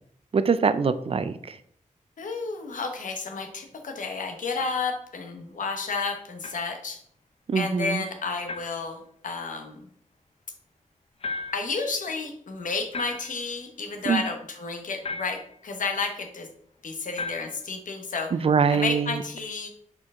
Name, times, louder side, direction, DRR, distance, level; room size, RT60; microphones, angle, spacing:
voice 1, 0.3-1.6 7.5-8.0 14.1-14.2 18.3-19.2, right 5 dB, 45° right, 12 dB, 0.4 m, -23 dB
voice 2, 2.2-7.0 7.5-9.9 11.5-16.5 16.8-18.3 18.7-19.7, left 4 dB, 75° left, 5 dB, 1.0 m, -31 dB
sound 1, 4.6-4.9 6.4-6.6 8.5-8.9 11.2-11.8 12.9-13.5 15.0-15.6 17.1-17.7, left 4 dB, 45° left, 0.6 m, -36 dB
6.5 x 4.5 x 3.6 m, 0.66 s
wide cardioid pair, 135°, 13 cm